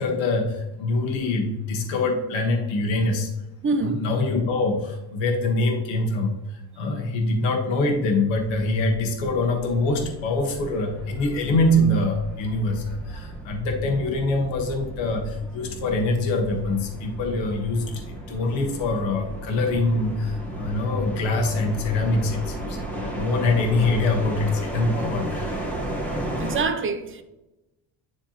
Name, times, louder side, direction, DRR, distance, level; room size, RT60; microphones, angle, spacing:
voice 1, 0.0-3.3 3.9-6.3 6.8-25.6 26.0-26.2, left 2 dB, 80° left, 3 dB, 1.3 m, -24 dB
voice 2, 3.6-4.0 26.4-27.2, right 4 dB, 30° right, 8 dB, 0.6 m, -25 dB
sound 1, 8.3-26.6, right 1 dB, 5° left, 1.2 m, -34 dB
9.9 x 3.4 x 2.9 m, 0.98 s
cardioid pair, 130°, 45 cm